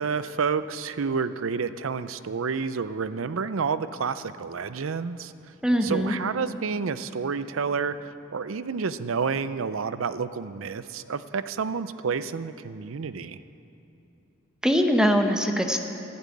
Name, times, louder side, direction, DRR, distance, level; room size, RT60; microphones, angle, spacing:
voice 1, 0.0-5.3 5.8-13.4, right 5 dB, 85° right, 13 dB, 0.5 m, -29 dB
voice 2, 5.6-6.2 14.6-15.8, equal, 5° right, 4 dB, 0.9 m, -22 dB
12.0 x 11.5 x 8.6 m, 2.9 s
head